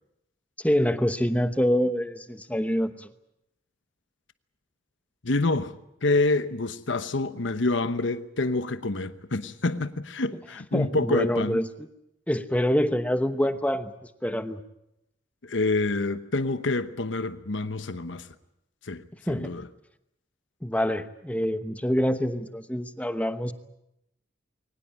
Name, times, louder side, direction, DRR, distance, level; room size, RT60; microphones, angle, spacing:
voice 1, 0.6-3.1 10.7-11.9 12.3-13.9 14.2-14.6 19.3-19.6 20.6-23.5, equal, 10° left, 1.0 m, -26 dB
voice 2, 5.2-5.7 6.0-11.6 15.4-18.3 18.9-19.0 19.3-19.7, left 2 dB, 80° left, 1.0 m, -27 dB
23.0 x 19.5 x 8.8 m
head